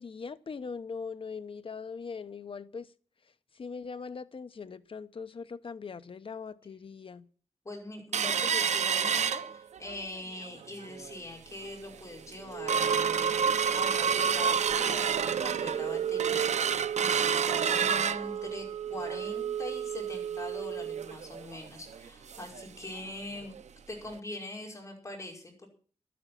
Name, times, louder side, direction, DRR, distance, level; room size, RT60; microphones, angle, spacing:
voice 1, 0.0-2.9 3.5-7.3, left 5 dB, 50° left, 0.8 m, -41 dB
voice 2, 7.6-23.6 23.9-25.7, left 2 dB, 25° left, 5.3 m, -43 dB
sound 1, 8.1-10.0 10.4-10.5 10.8-11.2 11.7-11.8 12.1-22.6 23.0-23.1 23.4-23.6 24.1-24.2, right 7 dB, 85° right, 0.6 m, -29 dB
12.0 x 10.5 x 7.5 m
wide cardioid pair, 140°, 11 cm